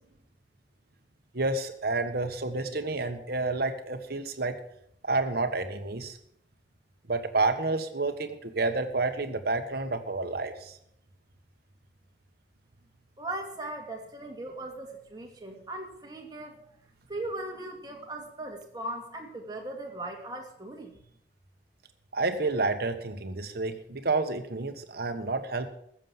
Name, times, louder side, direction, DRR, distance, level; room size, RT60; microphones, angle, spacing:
voice 1, 1.3-4.6 5.0-6.2 7.1-10.8 22.1-25.7, right 3 dB, 60° right, 7 dB, 1.4 m, -29 dB
voice 2, 13.2-16.6 17.1-20.9, right 1 dB, 25° right, 1 dB, 2.4 m, -38 dB
15.0 x 7.4 x 7.4 m, 0.72 s
head